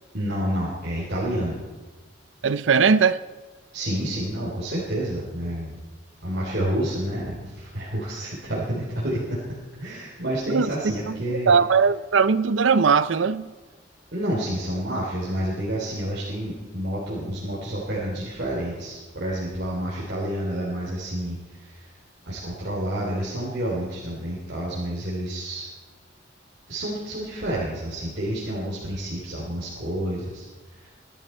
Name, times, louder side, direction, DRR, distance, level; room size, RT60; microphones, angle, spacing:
voice 1, 0.1-1.6 3.7-5.8 6.2-9.4 9.7-11.5 14.1-21.4 21.6-21.9 22.3-25.7 26.7-30.4 30.8-30.9, right 1 dB, 60° right, 3.1 m, -29 dB
voice 2, 2.4-3.2 10.5-13.5, right 5 dB, 80° right, 0.6 m, -20 dB
23.0 x 11.0 x 4.4 m
head